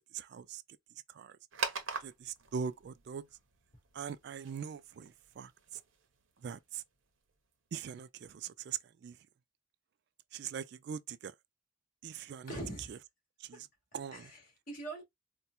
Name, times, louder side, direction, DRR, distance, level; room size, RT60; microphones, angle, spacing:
voice 1, 0.1-0.6 1.2-1.3 2.0-3.2 3.9-5.5 6.4-6.8 7.7-8.8 9.0-9.1 10.3-11.3 12.0-12.6 13.5-13.7 13.9-14.3, right 7 dB, 55° right, 0.3 m, -41 dB
sound 1, 1.5-7.5, right 5 dB, 80° right, 0.9 m, -44 dB
voice 2, 12.5-13.0 14.1-15.0, right 1 dB, 45° left, 1.8 m, -43 dB
4.2 x 2.2 x 2.3 m
head